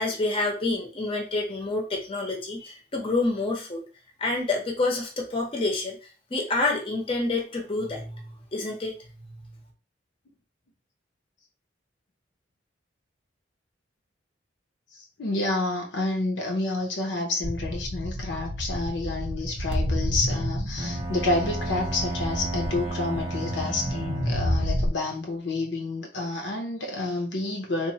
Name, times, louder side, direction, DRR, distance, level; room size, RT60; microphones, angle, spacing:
voice 1, 0.0-3.8 4.2-6.0 6.3-8.2 8.5-8.9, left 2 dB, 30° left, 0 dB, 0.6 m, -28 dB
voice 2, 14.9-27.9, left 2 dB, 70° left, 2 dB, 0.6 m, -29 dB
sound 1, 17.4-24.9, equal, 85° right, 0.7 m, -30 dB
Bowed string instrument, 20.8-24.7, right 2 dB, 20° right, 0.4 m, -33 dB
3.0 x 2.1 x 2.7 m, 0.35 s
head